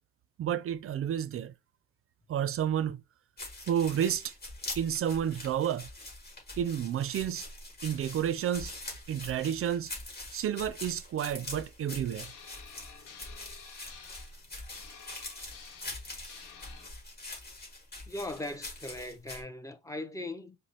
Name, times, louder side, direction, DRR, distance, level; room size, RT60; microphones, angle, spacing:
voice 1, 0.4-1.5 2.3-3.0 3.7-4.3 4.8-5.9 6.6-7.4 7.8-8.7 9.1-9.9 10.3-12.3, right 9 dB, 50° right, 0.4 m, -30 dB
sound 1, 3.4-19.4, left 2 dB, 35° left, 2.0 m, -44 dB
sound 2, 12.2-16.9, left 6 dB, 85° left, 0.9 m, -51 dB
voice 2, 18.1-20.6, left 1 dB, 10° left, 0.6 m, -39 dB
5.0 x 2.0 x 2.8 m
cardioid pair, 90°, 30 cm